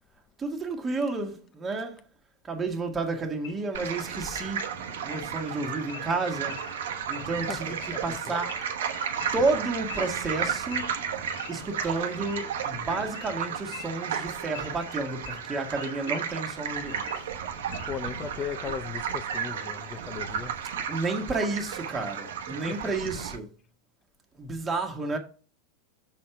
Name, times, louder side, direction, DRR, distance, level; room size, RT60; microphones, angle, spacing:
voice 1, 0.4-2.0 2.4-6.7 7.1-7.8 8.0-8.6 9.3-10.9 11.5-17.3 20.9-23.5 24.4-25.2, right 3 dB, 20° right, 1.4 m, -31 dB
Wild animals / Idling, 3.4-18.1, left 6 dB, 75° left, 2.1 m, -48 dB
sound 1, 3.7-23.4, right 7 dB, 80° right, 1.0 m, -34 dB
voice 2, 7.5-8.2 17.9-20.5 22.7-22.8, left 7 dB, 25° left, 0.6 m, -37 dB
6.4 x 4.2 x 5.7 m
hypercardioid pair, 110°, 0 cm